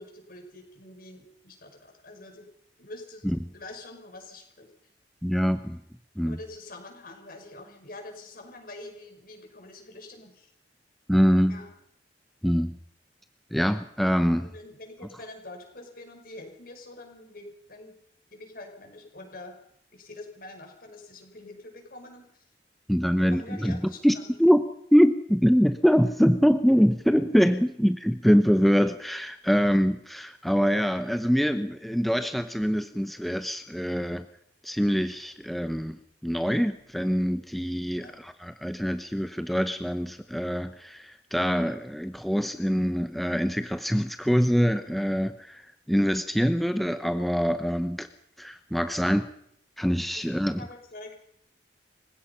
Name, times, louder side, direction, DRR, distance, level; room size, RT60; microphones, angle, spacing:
voice 1, 0.0-2.5 2.8-3.3 3.5-4.7 6.2-10.5 11.5-11.7 14.4-18.0 18.3-19.5 19.9-22.4 23.2-24.3 37.9-38.2 50.2-51.2, left 2 dB, 55° left, 4 dB, 5.8 m, -45 dB
voice 2, 5.2-5.8 6.2-6.4 11.1-11.6 12.4-12.8 13.5-14.5 22.9-24.6 24.9-34.3 34.6-48.1 48.4-49.3 49.8-50.7, equal, ahead, 9 dB, 0.8 m, -24 dB
29.0 x 16.5 x 5.8 m, 0.72 s
head